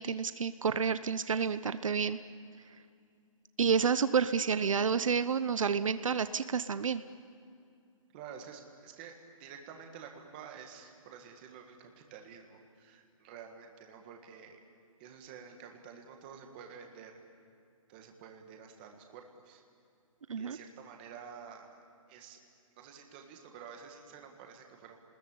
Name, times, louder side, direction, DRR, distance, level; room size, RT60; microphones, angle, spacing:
voice 1, 0.0-2.2 3.6-7.0 20.3-20.6, right 6 dB, 70° right, 13 dB, 0.9 m, -29 dB
voice 2, 8.1-9.1 9.4-14.6 15.0-17.2 17.9-19.6 20.4-21.8 22.1-22.4 22.8-25.0, right 7 dB, 15° right, 3 dB, 1.7 m, -50 dB
29.5 x 20.5 x 8.6 m, 2.5 s
hypercardioid pair, 175°, 17 cm